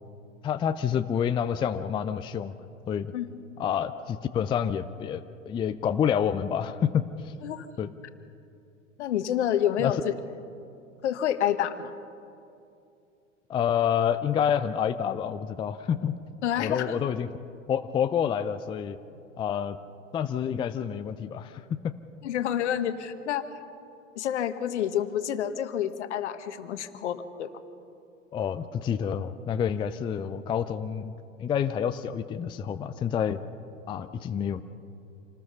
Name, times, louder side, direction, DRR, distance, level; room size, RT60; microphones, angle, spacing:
voice 1, 0.4-2.6 2.9-3.1 3.6-7.3 7.8-7.9 9.8-9.9 13.5-16.2 16.6-17.3 17.7-19.0 19.4-19.8 20.1-22.0 28.3-31.1 31.4-33.4 33.9-34.6, left 8 dB, 15° left, 10 dB, 0.4 m, -28 dB
voice 2, 9.0-10.1 11.0-11.9 16.4-17.0 22.2-23.5 24.1-27.5, left 10 dB, 60° left, 10 dB, 1.5 m, -28 dB
27.5 x 19.5 x 5.6 m, 2.6 s
figure-of-eight pair, 100°, 38 cm